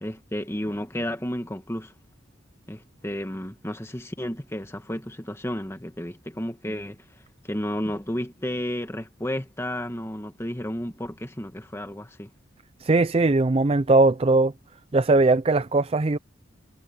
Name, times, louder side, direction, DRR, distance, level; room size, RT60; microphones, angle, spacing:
voice 1, 0.0-1.9 2.7-7.0 7.4-12.3, left 1 dB, 15° left, 1.5 m, -32 dB
voice 2, 12.8-14.5 14.9-16.2, right 2 dB, 30° right, 0.5 m, -20 dB
head